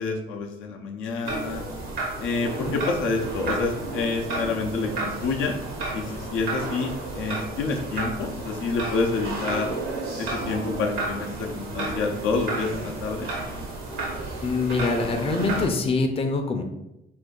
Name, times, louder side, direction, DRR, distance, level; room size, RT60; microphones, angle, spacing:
voice 1, 0.0-1.6 2.2-5.5 5.9-9.7 10.2-13.3, left 4 dB, 85° left, 2 dB, 0.5 m, -28 dB
sound 1, 1.2-15.7, right 2 dB, 90° right, 0.9 m, -32 dB
voice 2, 14.4-16.6, left 3 dB, 30° left, 5 dB, 0.4 m, -24 dB
2.6 x 2.6 x 3.7 m, 0.88 s
cardioid pair, 90°, 20 cm